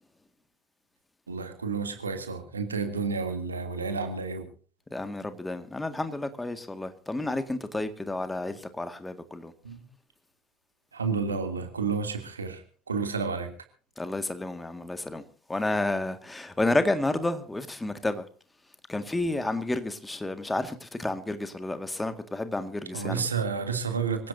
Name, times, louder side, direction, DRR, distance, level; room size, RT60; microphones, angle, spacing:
voice 1, 1.3-4.5 9.6-9.8 10.9-12.6 12.9-13.5 22.9-24.3, right 5 dB, 80° right, 2.8 m, -30 dB
voice 2, 4.9-9.5 14.0-15.2 15.5-18.2 18.9-23.3, left 2 dB, 10° left, 1.9 m, -30 dB
25.5 x 17.0 x 2.7 m
figure-of-eight pair, 70°, 0 cm